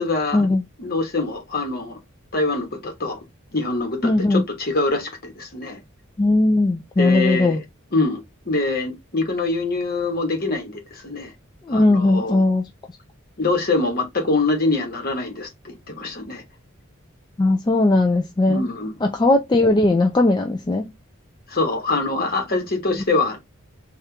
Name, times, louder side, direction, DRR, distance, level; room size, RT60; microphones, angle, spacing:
voice 1, 0.0-0.5 0.8-2.0 2.3-3.2 3.5-5.8 7.0-7.6 7.9-11.3 11.7-12.4 13.4-16.4 18.5-19.0 21.5-23.4, left 3 dB, 45° left, 1.3 m, -24 dB
voice 2, 4.0-4.4 6.2-7.6 11.7-12.6 17.4-18.7 19.0-20.9, left 2 dB, 20° left, 0.4 m, -18 dB
4.3 x 2.4 x 3.3 m
head